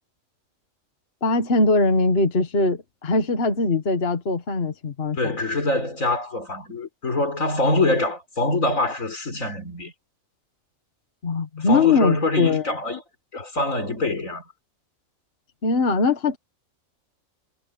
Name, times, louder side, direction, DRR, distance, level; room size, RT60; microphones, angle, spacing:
voice 1, 1.2-5.4 11.2-12.8 15.6-16.4, left 3 dB, 50° left, 1.6 m, -21 dB
voice 2, 5.2-9.9 11.6-13.0 13.3-14.4, left 2 dB, 85° left, 4.3 m, -24 dB
omnidirectional pair, 1.4 m